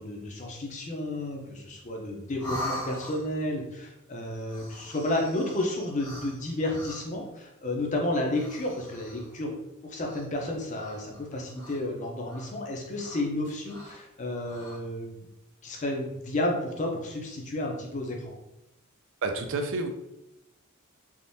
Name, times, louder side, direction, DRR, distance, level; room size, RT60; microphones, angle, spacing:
voice 1, 0.0-9.5 9.8-15.2 15.6-18.3, left 1 dB, 35° left, 1 dB, 0.6 m, -31 dB
sound 1, 2.4-3.5 4.4-7.2 8.2-9.4 10.0-10.5 10.8-12.0 12.3-12.5 12.9-14.0 14.4-14.8, equal, 85° left, 1.3 m, -41 dB
voice 2, 19.2-19.9, right 3 dB, 60° right, 6 dB, 0.4 m, -29 dB
3.5 x 2.5 x 2.6 m, 0.87 s
head